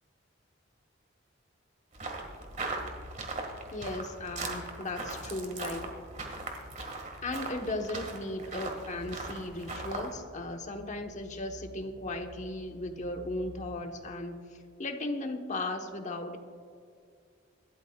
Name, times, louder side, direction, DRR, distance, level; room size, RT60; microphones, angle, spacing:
sound 1, 1.9-10.1, right 3 dB, 40° right, 1.8 m, -39 dB
sound 2, 2.7-14.0, left 2 dB, 65° right, 2.1 m, -52 dB
voice 1, 3.7-5.9 7.2-14.4 14.8-16.4, left 2 dB, 40° left, 5 dB, 1.1 m, -36 dB
26.0 x 13.0 x 2.3 m, 2.2 s
head